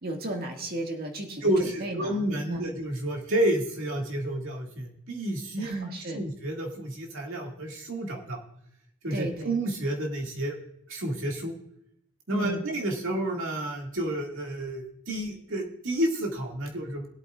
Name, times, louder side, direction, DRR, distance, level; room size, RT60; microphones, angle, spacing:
voice 1, 0.0-1.5 1.8-2.7 5.6-6.2 9.1-9.6 12.3-12.7, right 2 dB, 45° right, 1 dB, 1.9 m, -34 dB
voice 2, 1.4-8.4 9.0-10.6 10.9-11.5 12.3-17.1, right 1 dB, 65° right, 0 dB, 2.2 m, -30 dB
21.5 x 8.3 x 2.5 m, 0.74 s
head